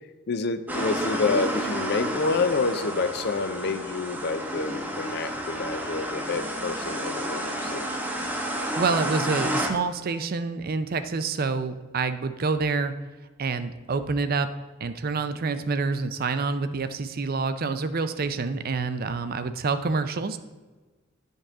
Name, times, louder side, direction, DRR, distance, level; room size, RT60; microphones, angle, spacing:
voice 1, 0.3-7.9, left 4 dB, 50° left, 10 dB, 0.5 m, -28 dB
sound 1, 0.7-9.7, equal, 10° right, 0.9 m, -30 dB
voice 2, 8.8-12.9 13.4-14.5 14.8-20.4, right 4 dB, 45° right, 10 dB, 0.5 m, -27 dB
10.0 x 5.4 x 3.6 m, 1.3 s
head